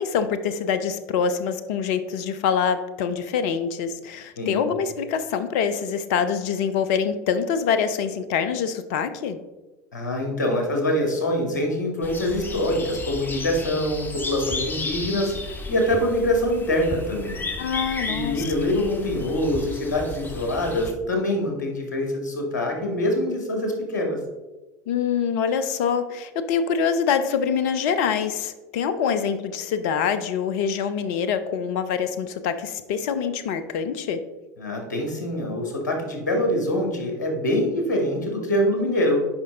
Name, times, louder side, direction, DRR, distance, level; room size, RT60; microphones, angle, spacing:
voice 1, 0.0-9.4 17.6-18.4 24.9-34.2, left 7 dB, 60° left, 11 dB, 0.8 m, -25 dB
voice 2, 4.4-4.8 9.9-17.4 18.1-24.2 34.6-39.3, left 1 dB, 75° left, 2 dB, 1.9 m, -24 dB
sound 1, 12.0-20.9, left 3 dB, 20° left, 1.1 m, -33 dB
9.6 x 5.4 x 3.7 m, 1.1 s
figure-of-eight pair, 75°, 10 cm